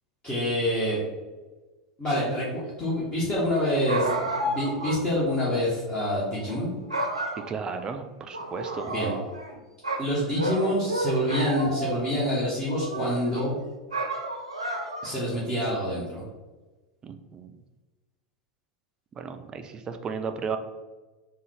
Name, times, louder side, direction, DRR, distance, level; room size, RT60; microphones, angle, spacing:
voice 1, 0.2-1.0 2.0-6.8 8.8-9.1 10.0-13.6 15.0-16.2, equal, 20° left, -8 dB, 1.1 m, -27 dB
sound 1, 3.9-5.0 5.4-5.5 6.3-6.6 6.9-7.9 8.3-9.5 9.8-12.1 12.6-13.4 13.9-15.2, right 2 dB, 85° right, 0.6 m, -31 dB
voice 2, 7.5-8.9 17.0-17.5 19.2-20.6, right 5 dB, 25° right, 7 dB, 0.3 m, -34 dB
3.7 x 2.3 x 3.2 m, 1.2 s
figure-of-eight pair, 85°, 3 cm